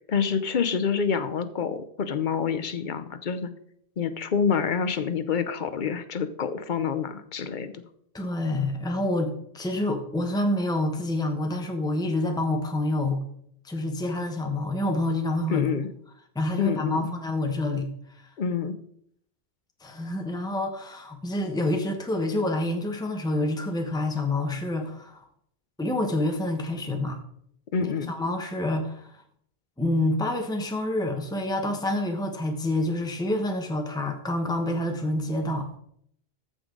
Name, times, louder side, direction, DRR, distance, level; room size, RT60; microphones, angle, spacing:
voice 1, 0.1-3.5 4.0-7.8 15.5-15.9 16.6-17.1 18.4-18.8 27.7-28.1, left 6 dB, 55° left, 11 dB, 0.8 m, -27 dB
voice 2, 8.1-13.2 13.6-15.7 16.3-17.9 18.2-18.3 19.8-25.2 25.8-27.2 27.8-29.1 29.8-35.7, left 1 dB, 5° left, 3 dB, 1.0 m, -27 dB
14.0 x 5.2 x 3.8 m, 0.68 s
omnidirectional pair, 1.1 m